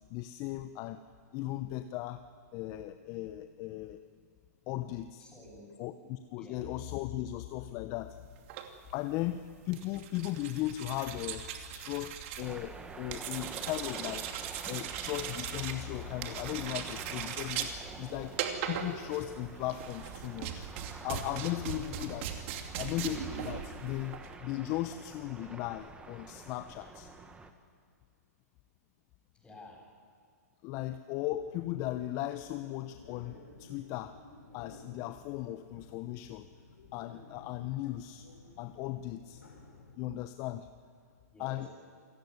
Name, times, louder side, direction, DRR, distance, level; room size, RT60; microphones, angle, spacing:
voice 1, 0.1-1.0 1.3-2.2 2.5-4.1 4.7-5.3 5.8-8.2 8.9-14.3 14.7-18.4 18.6-20.7 21.0-22.4 22.7-27.1 30.6-34.2 34.5-36.5 36.9-38.3 38.6-39.4 40.0-40.7 41.4-41.7, left 14 dB, 35° left, 10 dB, 0.9 m, -37 dB
voice 2, 5.2-5.8 6.4-6.7 21.6-21.7 29.3-29.9 41.3-41.7, left 1 dB, 10° left, 0 dB, 7.7 m, -52 dB
sound 1, 8.4-24.4, right 9 dB, 45° right, 2.7 m, -40 dB
sound 2, 12.4-27.5, right 4 dB, 10° right, 1.7 m, -49 dB
sound 3, 32.8-39.9, left 3 dB, 80° left, 6.7 m, -55 dB
28.0 x 17.0 x 9.6 m, 2.1 s
hypercardioid pair, 130°, 9 cm